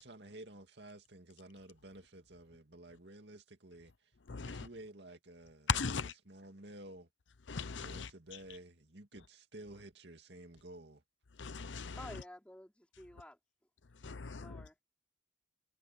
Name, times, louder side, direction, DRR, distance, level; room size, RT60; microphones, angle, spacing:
voice 1, 0.0-3.9 4.4-5.7 6.3-7.1 7.8-11.0, right 1 dB, 60° right, 2.5 m, -52 dB
voice 2, 4.3-4.7 5.7-6.1 7.5-8.1 11.4-12.2 14.0-14.7, left 5 dB, 75° left, 0.8 m, -38 dB
voice 3, 12.0-13.4 14.4-14.8, left 1 dB, 5° left, 4.3 m, -51 dB
head